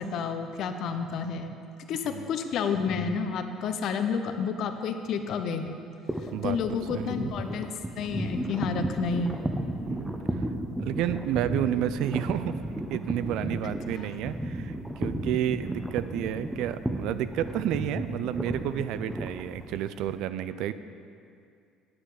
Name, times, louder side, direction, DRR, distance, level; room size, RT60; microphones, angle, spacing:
voice 1, 0.0-1.5 1.9-5.8 6.4-9.5 13.6-14.1, left 5 dB, 60° left, 7 dB, 0.8 m, -30 dB
sound 1, 6.1-20.1, right 1 dB, 10° right, 1.0 m, -33 dB
voice 2, 6.9-7.3 9.9-10.5 10.8-12.6 12.9-20.7, right 11 dB, 70° right, 13 dB, 0.4 m, -31 dB
9.5 x 8.9 x 4.9 m, 2.4 s
hypercardioid pair, 60°, 0 cm